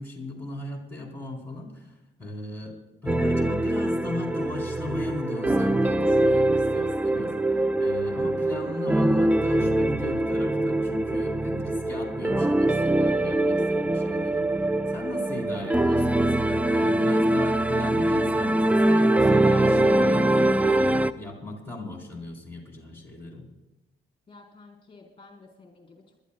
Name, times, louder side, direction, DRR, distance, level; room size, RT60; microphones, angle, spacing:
voice 1, 0.0-2.8 3.0-23.5, left 2 dB, 10° left, -1 dB, 3.8 m, -37 dB
sound 1, 3.1-21.1, right 1 dB, 5° right, 0.4 m, -23 dB
voice 2, 24.3-26.2, left 3 dB, 25° left, 0 dB, 3.7 m, -52 dB
28.0 x 12.5 x 2.2 m, 1.1 s
cardioid pair, 90°, 20 cm